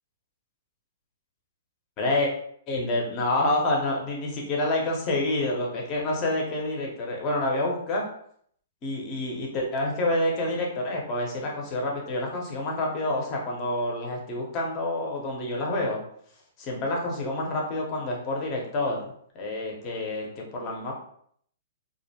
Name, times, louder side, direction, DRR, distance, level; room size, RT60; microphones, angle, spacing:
voice 1, 2.0-2.3 2.7-8.0 8.8-16.0 16.6-19.0 19.3-20.9, left 1 dB, 30° left, -1 dB, 0.7 m, -28 dB
2.4 x 2.1 x 2.7 m, 0.65 s
hypercardioid pair, 155°, 0 cm